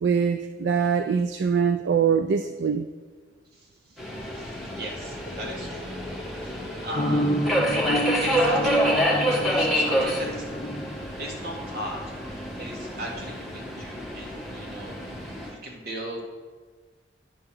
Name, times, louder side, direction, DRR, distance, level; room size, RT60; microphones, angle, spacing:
voice 1, 0.0-2.9, right 6 dB, 80° right, 9 dB, 0.3 m, -23 dB
Subway metro underground, 4.0-15.5, equal, ahead, 1.7 m, -28 dB
voice 2, 4.3-6.0 6.4-7.6 8.2-10.4 11.2-12.0 12.3-14.9 15.6-16.2, right 1 dB, 60° right, -2 dB, 1.8 m, -37 dB
sound 1, 6.9-11.7, equal, 35° left, 0.5 m, -29 dB
9.9 x 3.7 x 6.2 m, 1.4 s
head